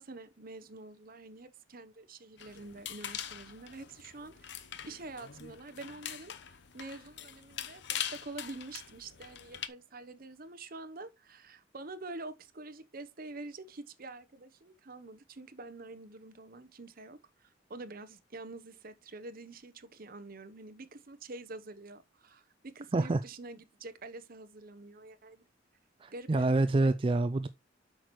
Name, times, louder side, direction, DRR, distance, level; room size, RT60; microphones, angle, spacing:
voice 1, 0.0-6.3 6.7-25.5 26.1-26.5 26.8-27.0, right 2 dB, 50° right, 1.0 m, -47 dB
sound 1, 2.4-9.7, left 10 dB, 65° left, 0.8 m, -43 dB
voice 2, 26.0-27.5, right 2 dB, 30° right, 0.4 m, -27 dB
8.5 x 6.1 x 3.1 m
head